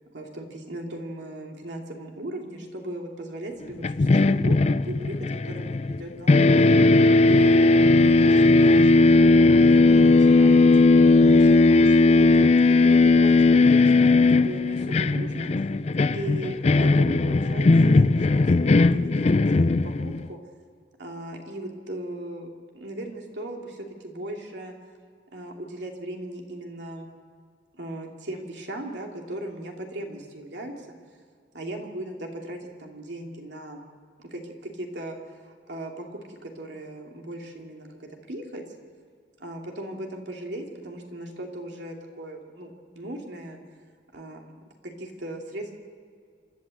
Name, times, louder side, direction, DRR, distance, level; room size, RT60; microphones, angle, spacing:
voice 1, 0.1-5.2 5.4-6.7 7.3-10.7 11.3-15.7 16.1-20.4 21.0-22.5 22.7-24.7 25.3-27.1 27.7-30.9 31.5-33.8 34.2-38.6 39.4-43.6 44.1-44.4 44.8-45.7, right 1 dB, 75° right, 1 dB, 2.9 m, -37 dB
sound 1, 3.8-6.0 6.3-20.3, left 3 dB, 40° left, 0.4 m, -18 dB
27.5 x 12.0 x 7.9 m, 2.1 s
head